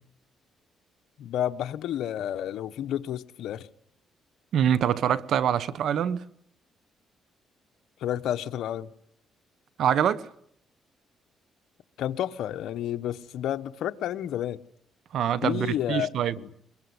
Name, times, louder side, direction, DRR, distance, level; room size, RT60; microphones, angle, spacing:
voice 1, 1.2-3.7 8.0-8.9 12.0-14.6 15.4-16.1 16.4-16.5, left 11 dB, 80° left, 1.0 m, -30 dB
voice 2, 4.5-6.2 9.8-10.3 15.1-16.4, right 9 dB, 70° right, 1.2 m, -25 dB
23.0 x 22.0 x 9.7 m
cardioid pair, 90°, 0 cm